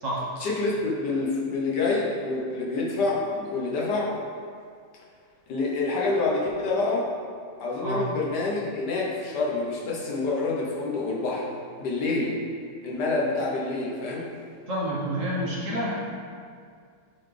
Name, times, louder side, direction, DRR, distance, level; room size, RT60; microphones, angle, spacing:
voice 1, 0.4-4.1 5.5-7.1 7.6-11.5 11.8-12.3 12.8-14.3, left 3 dB, 70° left, -4 dB, 1.6 m, -27 dB
voice 2, 14.7-15.9, right 1 dB, 50° right, -6 dB, 1.3 m, -28 dB
9.2 x 4.1 x 3.3 m, 2.1 s
omnidirectional pair, 1.9 m